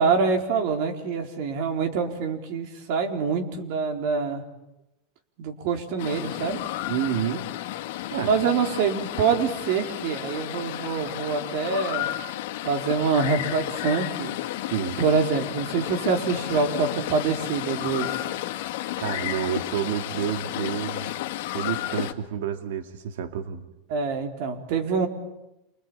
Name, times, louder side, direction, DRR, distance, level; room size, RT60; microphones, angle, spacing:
voice 1, 0.0-4.4 5.4-6.6 8.2-12.1 12.6-14.3 15.0-18.1 23.9-25.1, right 5 dB, 65° right, 4 dB, 4.3 m, -25 dB
sound 1, 6.0-22.1, left 14 dB, 75° left, 2.1 m, -32 dB
voice 2, 6.9-7.5 8.1-8.3 14.7-15.0 19.0-21.1 21.5-23.7, right 9 dB, 85° right, 7 dB, 2.2 m, -29 dB
28.0 x 22.0 x 8.9 m, 0.92 s
supercardioid pair, 135°, 0 cm